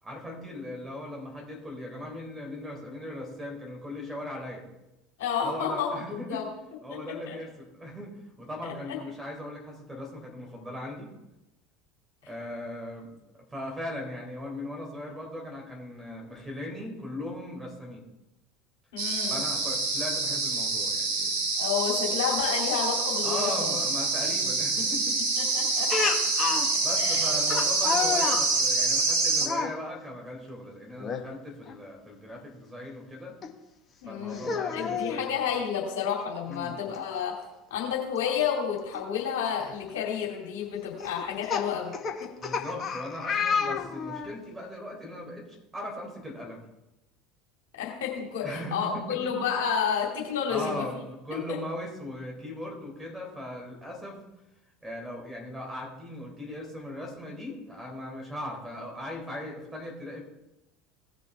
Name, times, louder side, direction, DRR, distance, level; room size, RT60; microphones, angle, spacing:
voice 1, 0.0-4.7 5.4-6.4 6.8-11.1 12.3-18.1 19.3-21.4 23.2-25.2 26.2-33.4 34.1-35.3 36.5-36.9 42.4-46.6 48.4-49.3 50.5-54.2 54.8-60.2, left 1 dB, 15° right, 1 dB, 3.5 m, -38 dB
voice 2, 5.2-6.4 6.9-7.0 7.3-7.4 8.6-8.7 18.9-19.4 21.6-23.7 25.4-26.1 27.0-27.3 34.0-37.3 37.7-41.9 42.2-42.3 47.8-50.9 51.5-51.6, left 7 dB, 65° left, -2 dB, 2.4 m, -30 dB
sound 1, 19.0-29.5, right 3 dB, 65° right, 1.7 m, -26 dB
Speech, 25.9-26.7 27.5-28.5 29.4-29.7 31.0-31.2 31.7-31.8 33.4-33.5 34.3-35.2 36.5-36.6 36.9-37.0 38.9-39.0 39.7-39.9 41.0-44.3, left 6 dB, 30° left, 1.1 m, -30 dB
17.5 x 6.2 x 3.3 m, 0.94 s
figure-of-eight pair, 70°, 0 cm